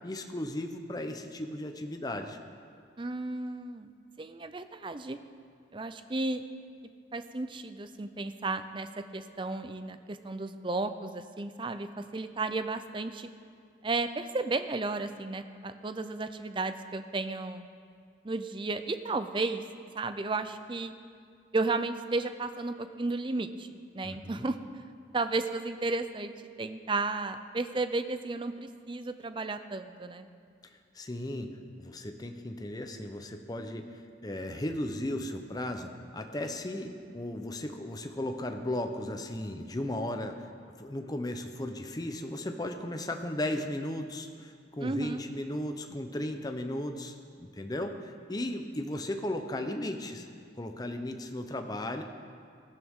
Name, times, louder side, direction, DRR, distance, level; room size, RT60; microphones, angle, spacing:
voice 1, 0.0-2.4 24.0-24.5 30.9-31.5 31.8-40.4 40.8-50.3 50.6-52.0, left 1 dB, 20° left, 5 dB, 0.7 m, -36 dB
voice 2, 3.0-3.9 4.2-5.2 5.7-6.4 7.1-13.3 13.8-17.6 18.2-19.6 19.9-20.9 21.5-23.7 23.9-24.8 25.1-26.3 26.6-30.3 44.8-45.2, right 3 dB, 25° right, 10 dB, 0.5 m, -33 dB
18.0 x 12.5 x 3.7 m, 2.2 s
head